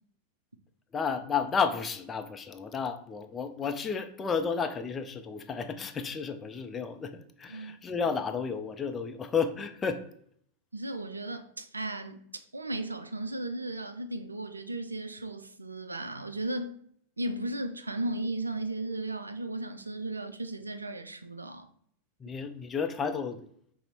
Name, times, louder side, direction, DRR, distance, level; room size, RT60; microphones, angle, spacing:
voice 1, 0.9-10.0 22.2-23.4, left 6 dB, 20° left, 0.4 m, -32 dB
voice 2, 7.5-7.8 10.7-12.2 12.5-16.8 17.2-21.7, right 2 dB, 80° right, 0.4 m, -35 dB
5.2 x 2.0 x 4.2 m
figure-of-eight pair, 90°, 0 cm